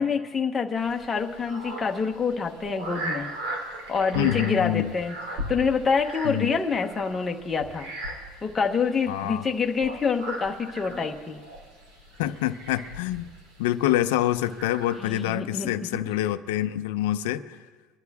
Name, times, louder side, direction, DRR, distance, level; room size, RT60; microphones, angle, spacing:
voice 1, 0.0-3.3 3.9-5.1 5.5-7.9 8.4-11.4 15.0-16.0, left 5 dB, 10° left, 2 dB, 0.9 m, -26 dB
sound 1, 0.8-15.2, right 1 dB, 80° right, 3.6 m, -38 dB
voice 2, 4.1-4.9 6.2-6.5 9.1-9.4 12.2-13.3 13.6-17.6, left 13 dB, 85° left, 9 dB, 0.6 m, -26 dB
25.5 x 11.5 x 3.6 m, 1.4 s
cardioid pair, 170°, 0 cm